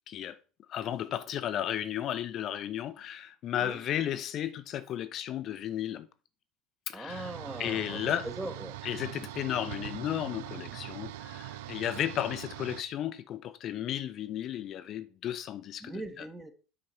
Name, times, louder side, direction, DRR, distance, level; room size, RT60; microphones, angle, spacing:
voice 1, 0.1-0.4 0.7-6.1 6.9-7.3 7.6-8.3 8.8-16.2, left 11 dB, 50° left, 0.7 m, -34 dB
voice 2, 6.9-8.8 15.8-16.5, right 1 dB, 10° right, 1.4 m, -40 dB
sound 1, 7.1-12.8, right 14 dB, 70° right, 0.4 m, -42 dB
8.6 x 5.1 x 4.4 m
hypercardioid pair, 70°, 0 cm